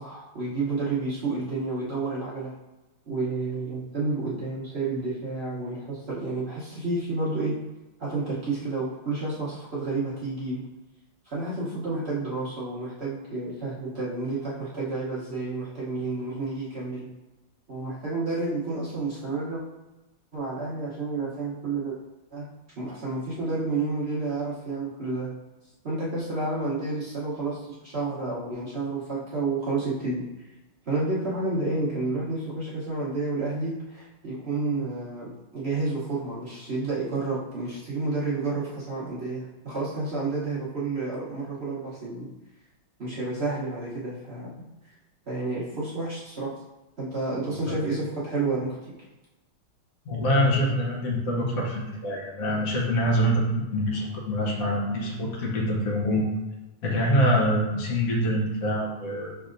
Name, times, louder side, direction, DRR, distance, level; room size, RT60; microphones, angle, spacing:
voice 1, 0.0-2.5 3.1-7.6 8.0-10.6 11.2-17.1 17.7-19.6 20.3-22.0 22.3-22.5 22.8-25.3 25.8-30.5 30.9-42.3 43.0-44.6 45.3-46.5 47.0-48.8, right 3 dB, 50° right, -8 dB, 0.8 m, -30 dB
voice 2, 50.1-56.2 56.8-59.4, equal, 55° left, -2 dB, 1.1 m, -25 dB
5.8 x 3.3 x 2.5 m, 1.1 s
omnidirectional pair, 2.2 m